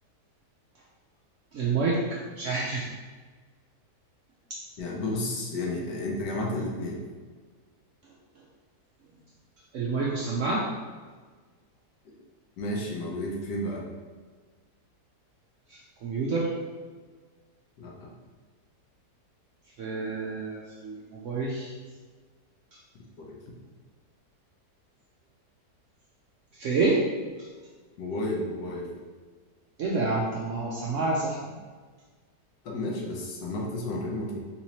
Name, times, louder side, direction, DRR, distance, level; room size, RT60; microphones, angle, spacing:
voice 1, 1.5-2.9 9.7-10.7 15.7-16.5 19.8-21.7 26.5-27.0 29.8-31.5, right 3 dB, 70° right, -4 dB, 0.7 m, -28 dB
voice 2, 4.8-7.0 12.6-13.8 17.8-18.1 23.2-23.4 28.0-28.9 32.6-34.4, left 1 dB, 80° left, -1 dB, 1.3 m, -32 dB
3.8 x 3.0 x 2.8 m, 1.5 s
omnidirectional pair, 1.8 m